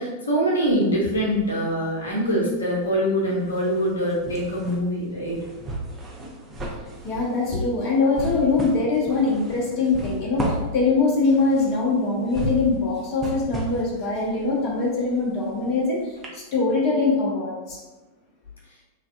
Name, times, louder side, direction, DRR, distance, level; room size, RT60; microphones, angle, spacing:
voice 1, 0.0-5.5, equal, 75° left, -4 dB, 0.7 m, -24 dB
sound 1, 0.6-1.8 2.1-15.8 16.2-16.3, right 1 dB, 20° right, 0.6 m, -34 dB
voice 2, 7.0-17.8, left 3 dB, 40° left, -3 dB, 0.6 m, -23 dB
3.2 x 2.3 x 2.5 m, 1.1 s
figure-of-eight pair, 90°, 0 cm